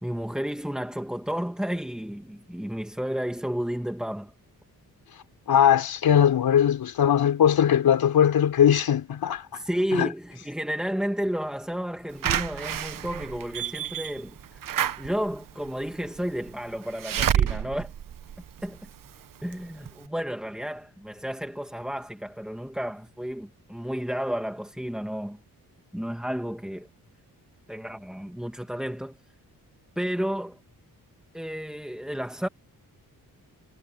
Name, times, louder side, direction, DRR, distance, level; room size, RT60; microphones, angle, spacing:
voice 1, 0.0-4.3 9.5-14.6 15.0-17.9 18.6-18.9 19.4-25.4 25.9-26.9 27.7-29.2 30.0-30.6 31.3-32.5, equal, ahead, 1.9 m, -32 dB
voice 2, 5.5-9.5 9.9-10.1, left 9 dB, 75° left, 4.1 m, -20 dB
Slam / Alarm, 12.2-19.0 19.5-19.6 19.9-20.0, right 10 dB, 65° right, 1.1 m, -29 dB
wide cardioid pair, 130°, 37 cm